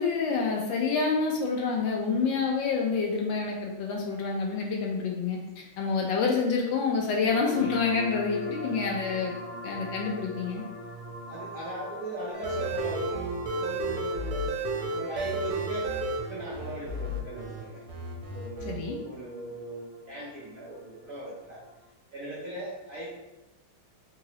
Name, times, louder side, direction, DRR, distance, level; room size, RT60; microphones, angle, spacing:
voice 1, 0.0-9.3 9.6-10.6 18.7-19.0, left 5 dB, 75° left, 0 dB, 1.2 m, -28 dB
sound 1, 7.3-21.8, left 1 dB, 40° left, 1.0 m, -43 dB
voice 2, 11.3-15.9 16.3-17.8 18.3-21.6 22.1-23.1, right 2 dB, 60° right, -7 dB, 0.9 m, -39 dB
sound 2, 12.3-17.6 17.9-18.7, right 2 dB, 80° right, 1.4 m, -32 dB
3.9 x 2.7 x 2.9 m, 0.99 s
omnidirectional pair, 2.3 m